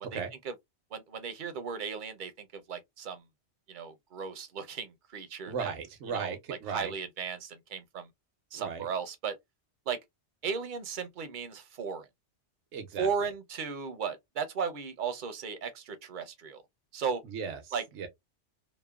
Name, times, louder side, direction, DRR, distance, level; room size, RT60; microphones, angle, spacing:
voice 1, 0.9-3.2 3.7-5.7 6.1-6.3 6.7-8.1 8.5-9.4 9.9-10.0 10.4-12.1 13.0-16.6 16.9-17.2 17.7-17.8, right 6 dB, 55° right, 0.6 m, -35 dB
voice 2, 5.5-6.9 8.5-8.9 12.7-13.3 17.2-18.1, right 6 dB, 85° right, 1.0 m, -37 dB
3.0 x 2.0 x 2.2 m
omnidirectional pair, 1.2 m